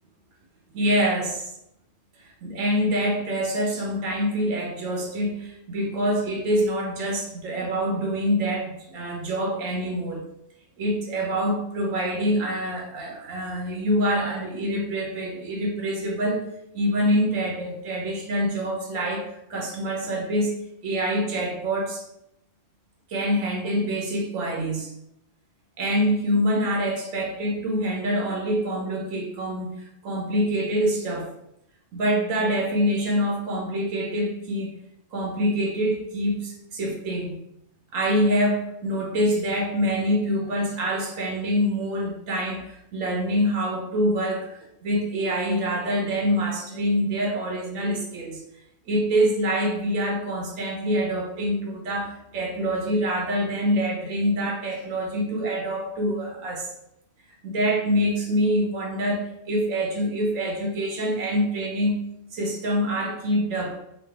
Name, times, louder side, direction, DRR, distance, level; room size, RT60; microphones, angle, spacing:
voice 1, 0.7-1.5 2.4-10.2 10.8-22.0 23.1-24.9 25.8-31.3 31.9-34.7 35.1-37.4 37.9-44.5 44.8-48.4 48.9-56.7 57.4-62.0 62.3-63.8, equal, 80° right, 0 dB, 1.0 m, -25 dB
3.1 x 2.6 x 3.3 m, 0.79 s
omnidirectional pair, 1.3 m